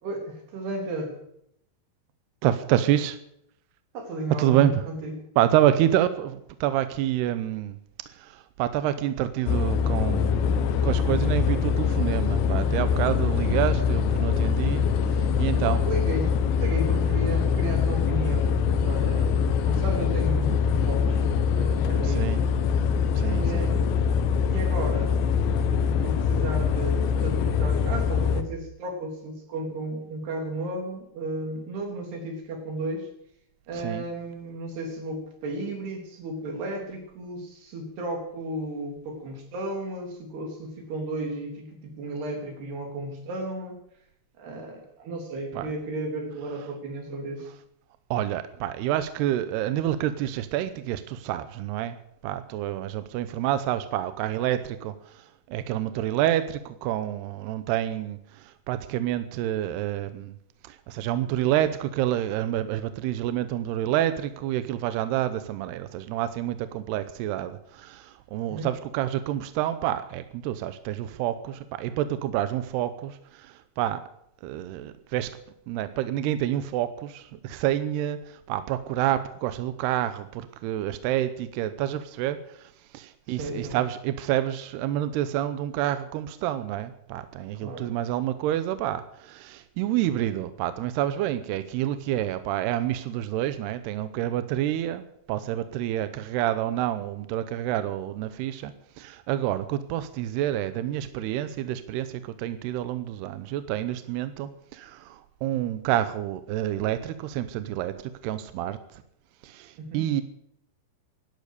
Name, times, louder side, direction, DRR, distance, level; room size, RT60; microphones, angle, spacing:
voice 1, 0.0-1.2 3.9-5.1 15.6-21.2 21.5-22.5 23.2-24.0 24.5-25.3 25.6-33.1 33.7-43.8 44.4-47.5 68.5-68.7 83.3-83.8 87.6-87.9 109.8-110.0, right 1 dB, 60° right, 2 dB, 5.4 m, -34 dB
voice 2, 2.4-3.2 4.4-4.8 5.4-7.8 8.1-15.8 22.0-22.4 23.1-23.7 33.7-34.0 45.5-45.7 48.1-52.0 52.2-60.3 60.6-74.0 74.4-75.3 75.7-108.8 109.4-110.2, right 12 dB, 80° right, 11 dB, 2.5 m, -28 dB
sound 1, 9.5-28.4, left 6 dB, 75° left, 3.1 m, -24 dB
17.5 x 12.0 x 6.7 m, 0.74 s
omnidirectional pair, 5.6 m